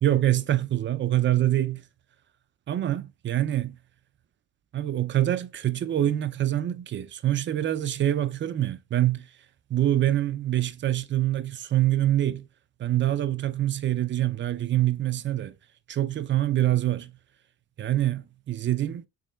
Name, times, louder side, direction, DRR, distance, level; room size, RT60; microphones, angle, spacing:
voice 1, 0.0-1.9 2.7-3.8 4.7-9.3 9.7-12.4 12.8-15.5 15.9-17.1 17.8-19.1, right 13 dB, 25° right, 0.4 m, -25 dB
3.6 x 3.2 x 3.1 m
supercardioid pair, 85°, 46 cm